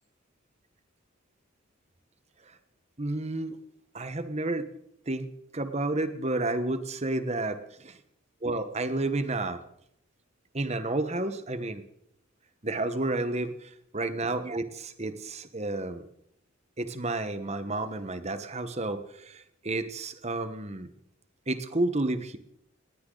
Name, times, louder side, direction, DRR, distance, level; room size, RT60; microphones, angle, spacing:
voice 1, 3.0-3.6 3.9-4.7 5.1-7.6 7.8-8.0 8.4-9.6 10.5-11.8 12.6-16.0 16.8-20.9 21.5-22.4, right 2 dB, 30° right, 10 dB, 1.3 m, -31 dB
20.0 x 16.5 x 4.0 m, 0.72 s
head